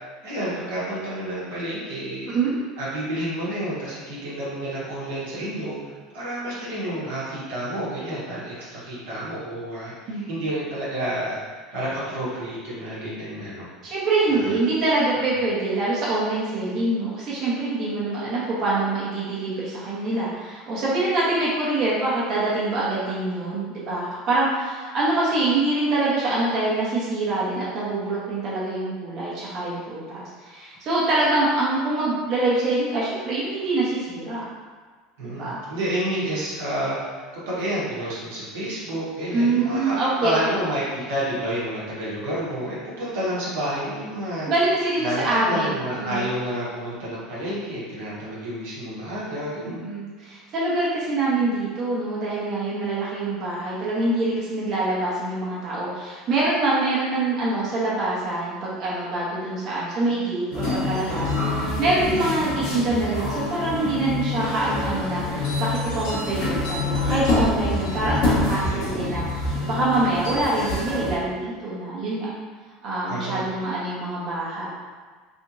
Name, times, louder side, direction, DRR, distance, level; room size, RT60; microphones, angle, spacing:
voice 1, 0.2-2.3 2.8-5.8 6.1-13.7 14.3-14.6 35.2-39.9 40.2-44.5 45.0-49.9 67.9-68.3 68.6-69.2 73.1-73.4, right 1 dB, 85° right, -9 dB, 1.2 m, -30 dB
voice 2, 13.8-34.4 35.2-35.6 39.3-40.6 44.5-45.7 46.0-46.3 49.6-72.3 72.8-74.7, right 2 dB, 50° right, -7 dB, 1.0 m, -25 dB
sound 1, 60.5-71.2, left 2 dB, 70° left, 1.1 m, -26 dB
3.4 x 2.9 x 2.6 m, 1.5 s
hypercardioid pair, 85°, 0 cm